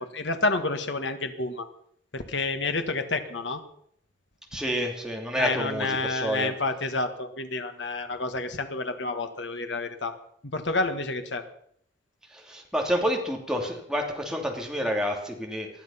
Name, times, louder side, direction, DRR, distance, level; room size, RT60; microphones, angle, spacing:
voice 1, 0.0-1.7 2.1-3.6 5.4-10.1 10.5-11.4, left 3 dB, 70° left, 7 dB, 1.6 m, -29 dB
voice 2, 4.5-6.5 12.3-15.7, equal, 5° right, 1 dB, 2.8 m, -29 dB
20.0 x 12.0 x 5.7 m, 0.67 s
head